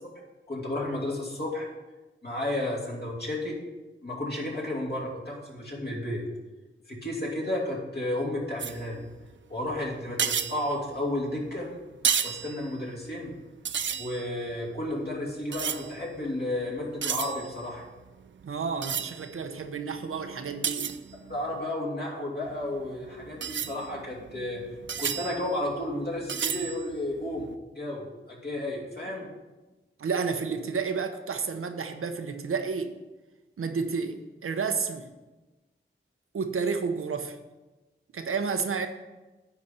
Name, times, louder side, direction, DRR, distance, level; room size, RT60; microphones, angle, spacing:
voice 1, 0.5-1.7 2.2-3.6 4.0-6.3 6.9-9.0 9.5-11.7 12.2-13.3 14.0-17.8 21.3-24.6 25.0-27.5 27.7-29.3, left 1 dB, 50° left, -3 dB, 2.7 m, -32 dB
sound 1, 8.6-9.3 9.7-9.8 10.1-11.5 11.9-13.4 13.6-16.3 16.6-21.6 22.5-27.6, right 7 dB, 60° right, 0.4 m, -33 dB
voice 2, 18.4-20.9 30.0-32.9 33.6-35.1 36.3-37.4 38.1-38.9, right 5 dB, 90° right, 7 dB, 0.8 m, -31 dB
9.9 x 4.2 x 6.6 m, 1.1 s
wide cardioid pair, 85°, 21 cm